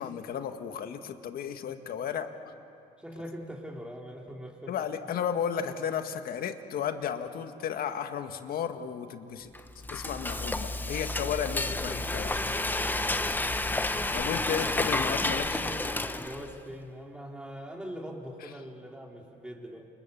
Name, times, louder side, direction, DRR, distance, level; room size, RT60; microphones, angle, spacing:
voice 1, 0.0-2.3 4.7-9.5 9.9-12.3 14.1-15.6, left 8 dB, 65° left, 7 dB, 1.8 m, -33 dB
voice 2, 3.0-4.8 15.1-19.9, equal, 5° right, 0 dB, 3.6 m, -42 dB
Frying (food), 9.5-16.6, left 2 dB, 10° left, 0.9 m, -30 dB
29.0 x 26.0 x 7.1 m, 2.8 s
cardioid pair, 110°, 17 cm